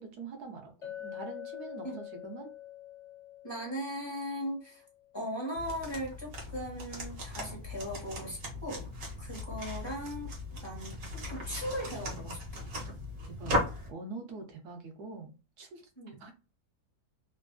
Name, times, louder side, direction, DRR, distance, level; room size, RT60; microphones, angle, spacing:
voice 1, 0.0-2.5 13.3-13.6 13.9-15.8 16.2-16.3, right 3 dB, 85° right, 3 dB, 1.4 m, -44 dB
Chink clink, 0.8-5.3, left 12 dB, 40° left, 0.4 m, -46 dB
voice 2, 3.4-4.8 5.1-8.9 9.2-10.3 10.6-12.4 16.0-16.2, equal, 20° left, -3 dB, 1.2 m, -38 dB
sound 1, 5.6-13.9, left 1 dB, 65° right, 1.6 m, -38 dB
3.3 x 2.5 x 2.2 m, 0.32 s
omnidirectional pair, 1.6 m